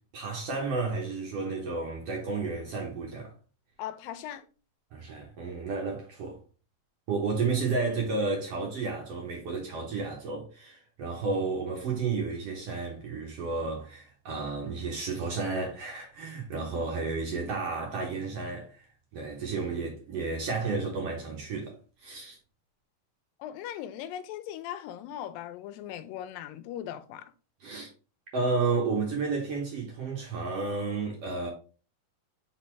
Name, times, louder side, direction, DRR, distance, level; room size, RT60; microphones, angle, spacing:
voice 1, 0.1-3.3 4.9-6.4 7.1-18.8 19.1-21.7 22.0-22.4 27.6-27.9 28.3-31.5, right 4 dB, 60° right, 1.7 m, -32 dB
voice 2, 3.8-4.5 16.5-16.7 23.4-27.3, left 11 dB, 90° left, 2.4 m, -39 dB
5.1 x 4.1 x 4.5 m
omnidirectional pair, 3.9 m